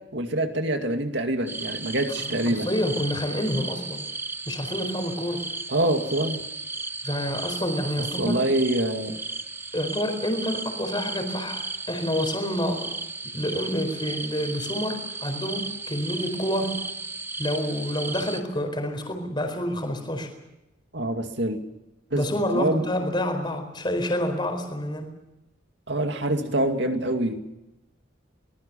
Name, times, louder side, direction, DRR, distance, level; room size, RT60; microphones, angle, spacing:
voice 1, 0.1-2.7 5.7-6.4 8.2-9.1 20.9-21.6 22.1-22.2 22.5-22.8 25.9-27.4, right 1 dB, 60° right, 5 dB, 2.4 m, -25 dB
sound 1, 1.5-18.4, right 3 dB, 10° right, 0.9 m, -35 dB
voice 2, 2.2-4.0 4.5-5.4 7.0-8.4 9.7-12.9 13.2-16.8 17.4-20.3 22.1-25.1, equal, 25° left, 5 dB, 4.5 m, -28 dB
25.0 x 20.0 x 7.0 m, 0.92 s
head